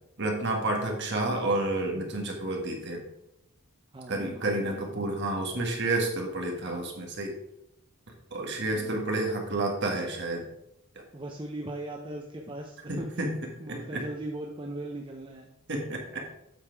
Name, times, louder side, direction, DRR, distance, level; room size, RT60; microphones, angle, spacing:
voice 1, 0.2-3.0 4.1-7.3 8.3-10.4 12.9-13.3 13.7-14.0 15.7-16.2, right 2 dB, 50° right, 1 dB, 1.7 m, -30 dB
voice 2, 3.9-4.8 11.1-13.3 13.6-15.5, right 1 dB, 20° right, 1 dB, 0.6 m, -39 dB
7.9 x 5.7 x 4.6 m, 0.87 s
head